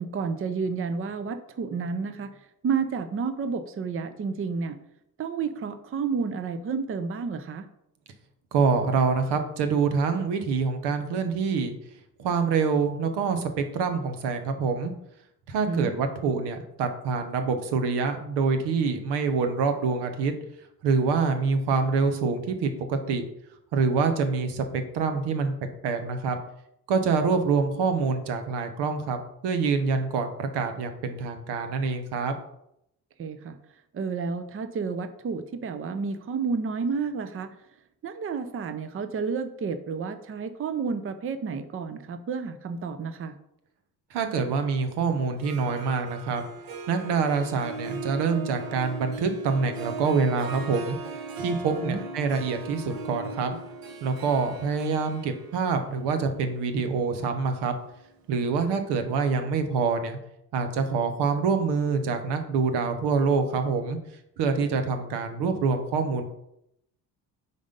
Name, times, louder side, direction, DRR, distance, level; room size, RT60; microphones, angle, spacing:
voice 1, 0.0-2.3 2.6-4.8 5.2-7.7 15.7-15.9 33.2-33.6 33.9-37.6 38.0-43.4 51.8-52.0, right 5 dB, 35° right, 10 dB, 0.6 m, -30 dB
voice 2, 8.5-11.8 12.2-14.9 15.5-20.3 20.8-23.2 23.7-26.4 26.9-29.2 29.4-32.4 44.1-46.5 46.9-51.0 51.4-53.6 54.0-57.7 58.3-60.2 60.5-64.0 64.4-66.3, right 5 dB, 80° right, 7 dB, 1.0 m, -26 dB
Harp, 45.3-58.2, right 4 dB, 60° right, 1.1 m, -39 dB
5.0 x 4.1 x 5.2 m, 0.78 s
supercardioid pair, 80°, 40 cm